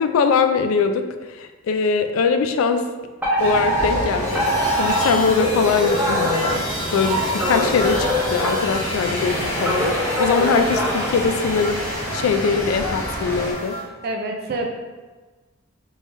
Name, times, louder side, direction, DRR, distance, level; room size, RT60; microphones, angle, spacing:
voice 1, 0.0-2.9 3.4-6.6 6.9-13.8, left 5 dB, 80° left, 7 dB, 0.3 m, -22 dB
Alarm, 3.2-11.8, equal, 10° right, 0.6 m, -25 dB
sound 1, 3.4-13.5, equal, 10° left, 1.0 m, -28 dB
sound 2, 4.2-13.8, equal, 35° left, 0.8 m, -32 dB
voice 2, 14.0-14.6, right 2 dB, 50° right, 2 dB, 0.4 m, -26 dB
3.7 x 3.2 x 2.5 m, 1.3 s
head